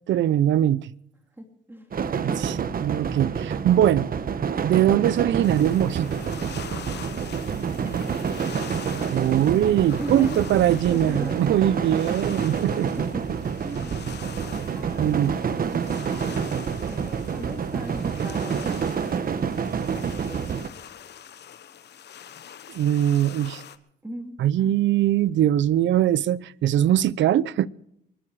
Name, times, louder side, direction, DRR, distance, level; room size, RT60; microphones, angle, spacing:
voice 1, 0.1-0.9 2.2-4.1 4.6-6.2 9.1-12.9 15.0-15.3 22.7-23.6 24.4-27.7, right 11 dB, 70° right, 0.7 m, -22 dB
voice 2, 1.4-1.9 7.8-8.3 10.0-10.4 10.9-11.4 12.8-14.0 14.7-16.0 16.3-18.9 19.9-20.7 24.0-24.7, right 1 dB, 10° right, 2.9 m, -38 dB
sound 1, 1.9-20.7, right 6 dB, 45° right, 1.2 m, -28 dB
sound 2, 5.4-23.8, left 9 dB, 60° left, 1.2 m, -44 dB
24.0 x 11.5 x 4.8 m
cardioid pair, 90°, 20 cm